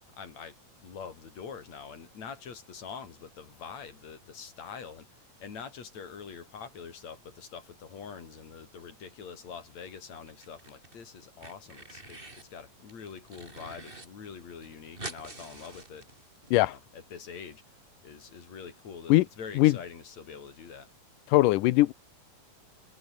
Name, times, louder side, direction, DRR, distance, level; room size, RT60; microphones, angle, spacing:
voice 1, 0.0-16.1 16.4-17.6 18.0-20.9, left 6 dB, 50° left, 4.5 m, -45 dB
sound 1, 10.3-10.9 11.2-12.5 12.9-14.1 14.3-14.4 14.6-16.5, right 2 dB, 15° right, 3.4 m, -45 dB
voice 2, 21.3-21.9, left 18 dB, 75° left, 2.1 m, -20 dB
omnidirectional pair, 4.1 m